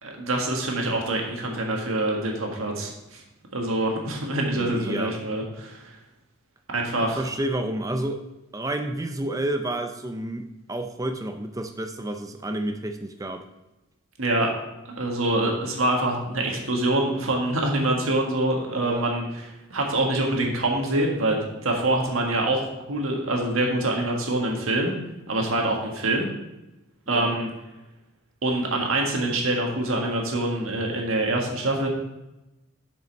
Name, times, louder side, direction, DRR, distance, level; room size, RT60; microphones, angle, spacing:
voice 1, 0.0-3.2 3.5-5.9 6.7-7.3 14.2-14.5 14.9-24.9 25.3-26.3 27.1-27.5 28.4-31.9, right 1 dB, 75° right, 0 dB, 1.6 m, -25 dB
voice 2, 4.5-5.2 7.0-8.2 8.5-13.4 18.8-19.1 27.1-27.4, right 1 dB, 15° right, 6 dB, 0.5 m, -30 dB
7.6 x 5.4 x 5.3 m, 0.97 s
head